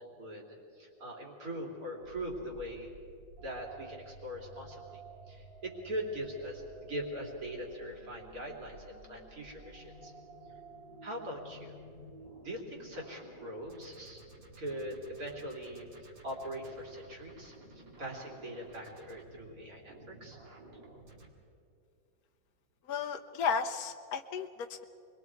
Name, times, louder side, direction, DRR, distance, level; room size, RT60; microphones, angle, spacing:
voice 1, 0.0-2.9 3.4-5.0 5.3-10.1 11.0-11.7 12.4-14.2 14.6-20.4, equal, 45° right, 0 dB, 3.6 m, -41 dB
sound 1, 2.0-21.3, right 2 dB, 70° right, 3.2 m, -53 dB
voice 2, 22.9-24.8, left 6 dB, 60° left, 5 dB, 1.1 m, -34 dB
28.5 x 22.5 x 4.7 m, 2.5 s
omnidirectional pair, 2.1 m